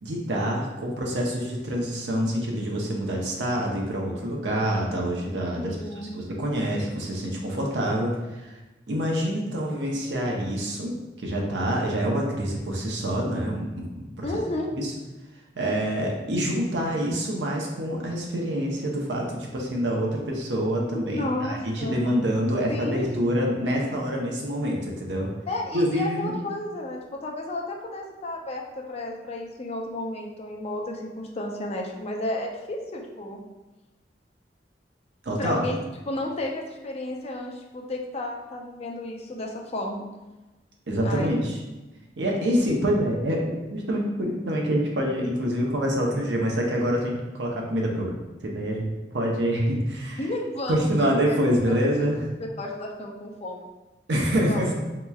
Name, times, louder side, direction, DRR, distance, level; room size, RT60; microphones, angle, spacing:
voice 1, 0.0-5.8 6.1-8.5 8.9-14.3 14.7-14.9 15.5-25.3 25.7-26.4 35.2-35.7 40.9-41.6 42.2-43.4 43.7-48.1 48.4-50.3 50.7-52.3 54.1-54.7, equal, 80° right, -1 dB, 0.7 m, -26 dB
voice 2, 5.6-6.1 14.2-14.7 21.1-22.0 22.7-23.1 25.5-33.4 35.4-35.8 36.1-40.1 41.0-41.3 42.3-42.5 50.2-51.3 51.7-51.8 52.6-53.7 54.5-54.7, left 1 dB, 35° left, 0 dB, 0.5 m, -32 dB
4.4 x 2.9 x 2.3 m, 1.1 s
head